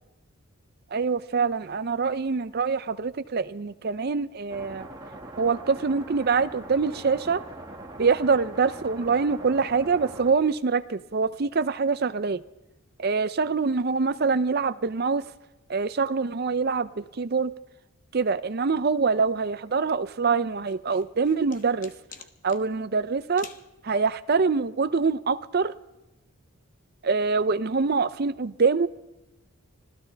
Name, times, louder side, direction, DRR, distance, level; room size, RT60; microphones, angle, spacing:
voice 1, 0.9-4.9 5.4-7.4 8.0-12.4 13.0-15.2 15.7-17.5 18.1-21.9 22.4-23.5 23.8-25.7 27.0-28.9, right 4 dB, 45° right, 0.5 m, -25 dB
sound 1, 4.5-10.3, right 1 dB, 20° right, 1.8 m, -42 dB
sound 2, 20.7-22.6 23.4-23.7, left 6 dB, 40° left, 0.9 m, -46 dB
25.5 x 16.5 x 3.4 m
head